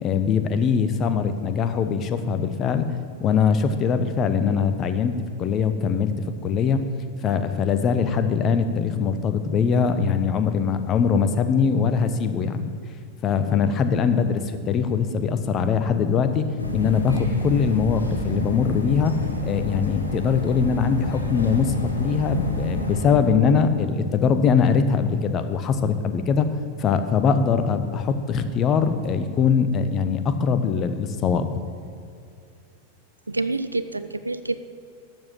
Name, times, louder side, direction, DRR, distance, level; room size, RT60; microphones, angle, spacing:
voice 1, 0.0-2.9 3.2-6.1 6.4-6.8 7.2-12.7 13.2-16.5 16.7-19.2 19.4-26.5 26.8-31.5, left 6 dB, 30° left, 10 dB, 0.9 m, -22 dB
sound 1, 16.6-23.1, left 1 dB, 80° left, 1.7 m, -28 dB
voice 2, 33.3-34.6, right 3 dB, 80° right, 12 dB, 0.4 m, -27 dB
12.5 x 7.5 x 7.6 m, 2.5 s
figure-of-eight pair, 90°, 0 cm